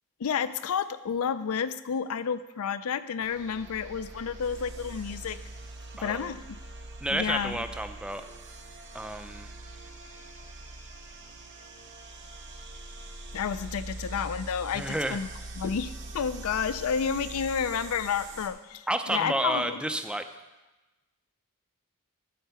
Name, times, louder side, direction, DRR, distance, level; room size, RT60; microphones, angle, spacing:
voice 1, 0.2-5.4 6.0-6.4 7.1-7.6 13.3-15.3 15.6-19.8, left 7 dB, 70° left, 13 dB, 0.4 m, -30 dB
sound 1, 3.2-18.5, right 2 dB, 55° right, 1.1 m, -43 dB
voice 2, 6.0-6.3 7.0-8.2 8.9-9.5 14.7-15.2 18.9-20.3, right 1 dB, 5° right, 8 dB, 0.5 m, -30 dB
12.0 x 4.4 x 6.9 m, 1.1 s
head